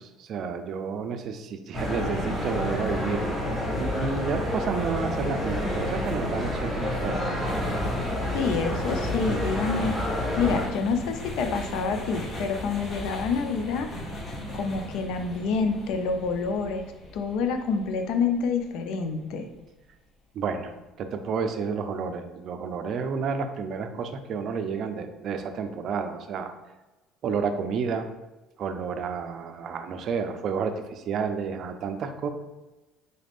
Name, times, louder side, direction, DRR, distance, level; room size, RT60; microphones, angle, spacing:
voice 1, 0.0-3.4 3.8-7.3 20.3-26.5 27.2-28.1 28.6-32.3, right 5 dB, 50° right, 7 dB, 0.4 m, -31 dB
sound 1, 1.7-10.7, left 1 dB, 15° left, 1.3 m, -29 dB
sound 2, 7.4-19.5, left 1 dB, 35° left, 0.8 m, -38 dB
voice 2, 8.3-9.9 10.4-13.9 14.5-16.9 17.1-19.5, left 5 dB, 70° left, 6 dB, 0.5 m, -27 dB
4.0 x 2.4 x 3.4 m, 1.1 s
cardioid pair, 120°, 0 cm